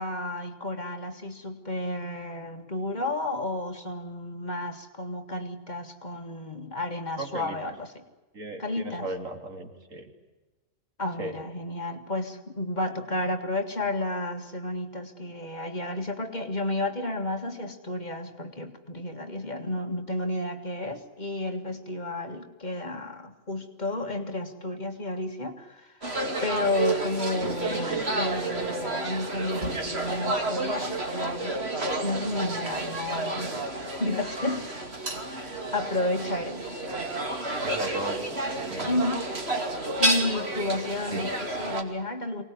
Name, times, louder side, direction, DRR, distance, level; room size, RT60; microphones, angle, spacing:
voice 1, 0.0-8.0 8.6-9.1 11.0-26.0 26.4-31.6 32.0-33.7 34.0-34.7 35.4-36.6 38.9-39.2 40.0-42.4, left 2 dB, 35° left, 5 dB, 2.0 m, -32 dB
voice 2, 7.2-7.6 8.3-10.1 11.2-11.3 37.6-38.4 38.7-38.9 41.1-41.2, right 2 dB, 75° right, 4 dB, 3.2 m, -36 dB
sound 1, 26.0-41.8, right 2 dB, 50° right, 2.8 m, -30 dB
23.5 x 19.5 x 9.5 m, 1.2 s
omnidirectional pair, 1.4 m